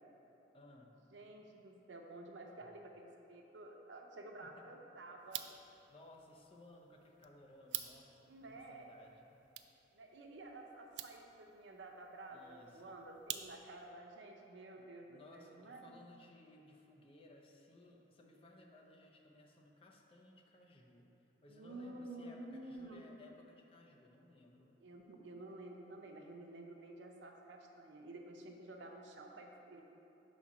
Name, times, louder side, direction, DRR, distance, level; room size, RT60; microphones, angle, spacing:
voice 1, 0.5-1.0 4.4-4.7 5.9-9.4 12.3-13.0 14.8-24.8, left 1 dB, 30° left, 0 dB, 0.6 m, -60 dB
voice 2, 1.1-5.4 8.3-8.9 9.9-16.0 21.5-23.0 24.8-29.8, right 2 dB, 90° right, 2 dB, 0.7 m, -51 dB
sound 1, 5.2-13.9, right 12 dB, 70° right, 0.3 m, -50 dB
5.0 x 4.2 x 6.0 m, 3.0 s
head